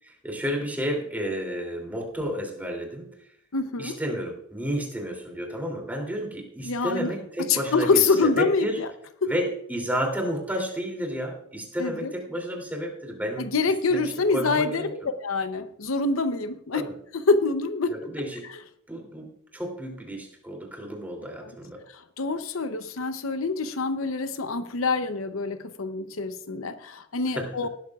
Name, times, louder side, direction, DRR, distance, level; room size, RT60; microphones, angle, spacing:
voice 1, 0.0-3.2 3.8-8.8 9.3-14.9 16.7-16.9 17.9-18.5 18.9-21.8 27.3-27.7, equal, 10° right, 1 dB, 2.9 m, -31 dB
voice 2, 3.5-4.0 6.7-7.1 7.5-8.9 9.2-9.3 11.8-12.1 13.4-16.8 17.3-17.9 18.5-18.6 21.4-21.5 21.9-27.7, left 3 dB, 70° left, 10 dB, 0.7 m, -26 dB
18.5 x 12.5 x 2.4 m, 0.71 s
head